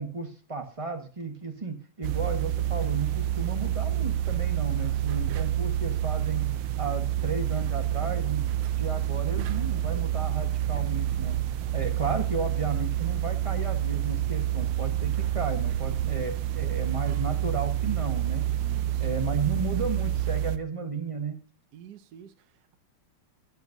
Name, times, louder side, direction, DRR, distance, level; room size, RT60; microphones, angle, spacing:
voice 1, 0.0-11.4 11.7-18.5 19.0-21.4, right 4 dB, 20° right, 4 dB, 1.1 m, -34 dB
sound 1, 2.0-20.6, right 12 dB, 75° right, 1.5 m, -28 dB
voice 2, 4.7-5.2 18.6-19.1 21.7-22.8, right 9 dB, 60° right, 10 dB, 1.1 m, -50 dB
17.5 x 7.2 x 2.7 m, 0.40 s
omnidirectional pair, 2.4 m